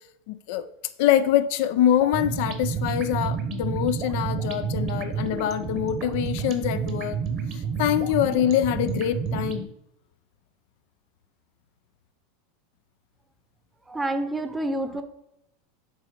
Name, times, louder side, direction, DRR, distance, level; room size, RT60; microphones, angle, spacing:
voice 1, 0.3-0.7 1.0-7.2 7.5-9.7, left 11 dB, 65° left, 12 dB, 0.4 m, -24 dB
sound 1, 2.0-9.6, right 6 dB, 45° right, 1.0 m, -30 dB
voice 2, 13.9-15.0, right 1 dB, 10° right, 8 dB, 0.8 m, -28 dB
8.1 x 3.1 x 4.8 m, 0.78 s
hypercardioid pair, 110°, 0 cm